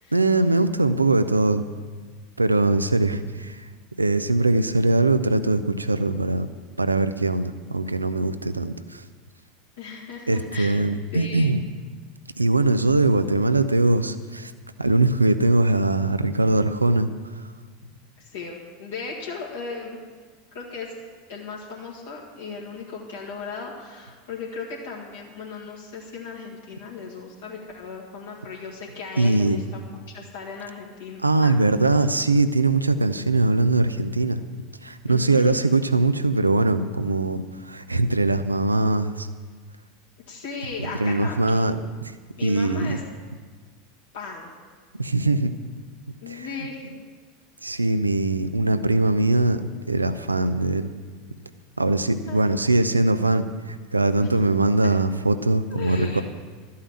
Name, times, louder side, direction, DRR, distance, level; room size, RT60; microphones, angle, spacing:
voice 1, 0.1-1.6 2.4-3.7 4.0-6.5 6.8-9.0 10.3-11.6 12.4-14.5 14.8-17.1 29.2-29.6 31.2-34.4 34.8-39.3 41.0-41.8 42.0-42.1 42.4-43.0 45.0-45.5 46.3-46.5 47.6-49.6 49.9-50.9 51.8-56.2, right 2 dB, 90° right, 11 dB, 0.5 m, -21 dB
voice 2, 9.8-10.8 11.1-11.5 18.2-20.0 20.5-20.9 21.3-29.8 30.1-31.5 35.1-35.6 40.3-41.6 42.4-43.0 44.1-44.6 46.2-46.9 52.3-52.5 55.7-56.2, left 5 dB, 70° left, -3 dB, 1.9 m, -36 dB
12.5 x 5.6 x 8.7 m, 1.5 s
figure-of-eight pair, 80°, 0 cm